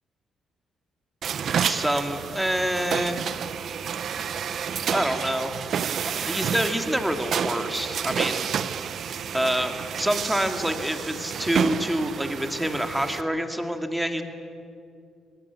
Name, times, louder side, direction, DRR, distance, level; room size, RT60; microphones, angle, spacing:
sound 1, 1.2-13.2, right 7 dB, 60° right, 0.9 m, -30 dB
voice 1, 1.6-3.2 4.9-5.5 6.2-8.5 9.3-14.2, equal, 5° right, 6 dB, 2.3 m, -27 dB
25.0 x 19.5 x 8.4 m, 2.4 s
cardioid pair, 90°, 0 cm